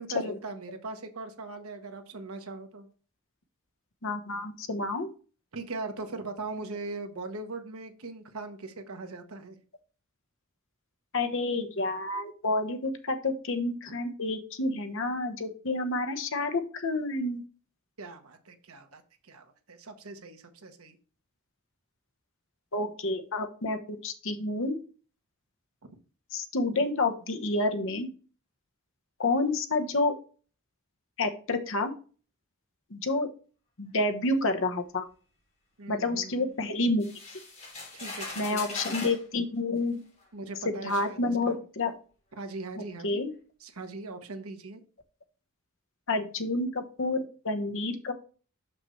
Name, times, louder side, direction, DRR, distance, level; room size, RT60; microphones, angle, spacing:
voice 1, 0.0-2.9 5.5-9.6 13.9-14.0 18.0-21.0 25.8-25.9 35.8-36.5 37.9-38.8 40.3-41.2 41.5-41.6 42.4-43.2 43.6-44.8, right 3 dB, 85° right, 6 dB, 1.2 m, -40 dB
voice 2, 4.0-5.1 11.1-17.4 22.7-24.8 26.3-28.1 29.2-30.1 31.2-31.9 32.9-33.3 33.8-35.0 35.9-37.1 38.4-40.0 40.6-41.9 43.0-43.3 46.1-48.1, left 2 dB, 65° left, 6 dB, 1.1 m, -29 dB
sound 1, 37.0-39.2 40.2-40.3 40.9-41.1, left 3 dB, 35° left, 3.0 m, -40 dB
6.7 x 5.9 x 3.2 m, 0.38 s
head